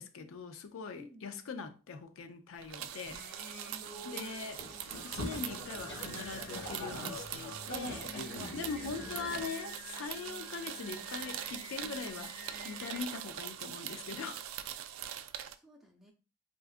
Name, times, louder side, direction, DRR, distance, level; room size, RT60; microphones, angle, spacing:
voice 1, 0.0-3.2 4.0-4.6 5.0-8.2 8.5-14.5, left 5 dB, 85° left, 0.4 m, -42 dB
voice 2, 0.9-1.3 3.7-4.2 15.5-16.1, equal, ahead, 0.5 m, -55 dB
sound 1, 2.6-15.5, right 10 dB, 90° right, 0.3 m, -43 dB
Singing, 3.0-13.0, left 2 dB, 40° left, 0.7 m, -51 dB
Boat Water vehicle, 4.5-9.5, left 1 dB, 65° left, 1.6 m, -43 dB
3.7 x 2.3 x 2.4 m
head